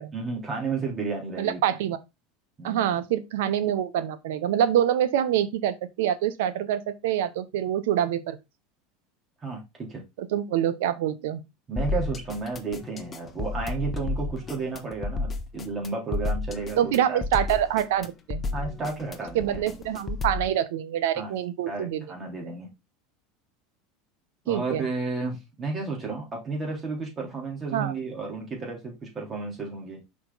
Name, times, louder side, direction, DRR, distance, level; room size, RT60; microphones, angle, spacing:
voice 1, 0.1-1.6 2.6-2.9 9.4-10.0 11.7-17.2 18.5-19.6 21.2-21.3 21.7-22.7 24.4-30.0, right 4 dB, 25° right, 3.8 m, -32 dB
voice 2, 1.4-2.0 2.6-8.4 10.2-11.4 16.8-18.4 19.3-22.0 24.5-24.9 27.7-27.9, right 10 dB, 80° right, 0.9 m, -26 dB
sound 1, 11.8-20.5, left 3 dB, 25° left, 1.0 m, -32 dB
5.8 x 5.1 x 4.0 m
supercardioid pair, 115°, 0 cm